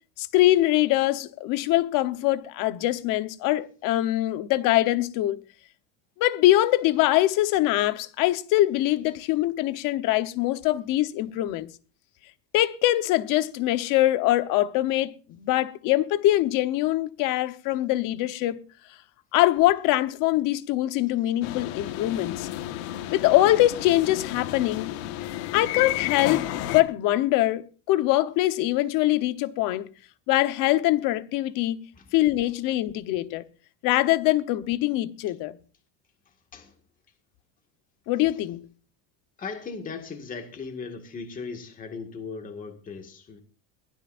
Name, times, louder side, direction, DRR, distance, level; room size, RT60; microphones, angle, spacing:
voice 1, 0.2-5.4 6.2-11.7 12.5-18.6 19.3-22.5 23.1-24.9 25.5-29.9 30.3-31.8 32.1-33.4 33.8-35.6 38.1-38.7, left 15 dB, 55° left, 1.1 m, -23 dB
sound 1, 21.4-26.8, left 13 dB, 85° left, 1.6 m, -32 dB
voice 2, 39.4-43.4, left 5 dB, 20° left, 2.0 m, -38 dB
22.0 x 16.5 x 2.6 m
cardioid pair, 165°, 40 cm